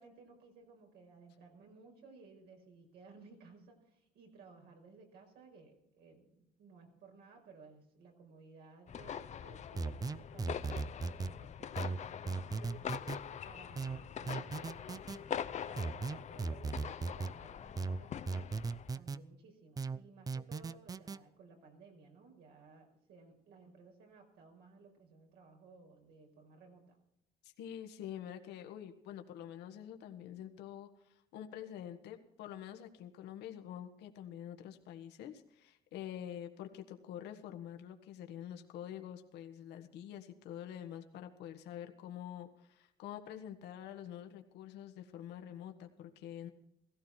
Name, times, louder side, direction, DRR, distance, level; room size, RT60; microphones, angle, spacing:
voice 1, 0.0-12.9 13.5-18.5 18.9-27.0, right 4 dB, 80° right, 2 dB, 5.6 m, -58 dB
sound 1, 8.9-18.9, left 8 dB, 45° left, 0.8 m, -44 dB
sound 2, 9.8-11.3 11.8-13.2 13.8-15.2 15.8-17.3 17.8-19.2 19.8-21.2, right 4 dB, 20° right, 0.6 m, -38 dB
voice 2, 27.4-46.5, left 10 dB, 85° left, 6 dB, 1.7 m, -47 dB
16.5 x 16.0 x 4.5 m, 0.77 s
cardioid pair, 110°, 17 cm